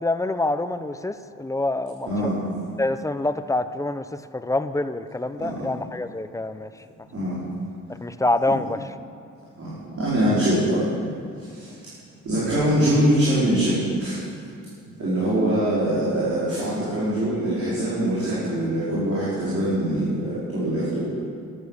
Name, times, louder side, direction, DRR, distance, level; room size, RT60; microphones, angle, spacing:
voice 1, 0.0-2.1 2.8-4.0 4.3-6.7 8.0-8.8 11.7-11.8, left 2 dB, 10° left, 11 dB, 0.5 m, -26 dB
voice 2, 2.0-2.4 5.4-5.6 7.1-7.4 9.6-11.1 11.4-11.7 12.2-14.2 15.0-21.1, right 1 dB, 45° right, -9 dB, 4.5 m, -23 dB
14.0 x 11.5 x 6.5 m, 2.5 s
cardioid pair, 125°, 31 cm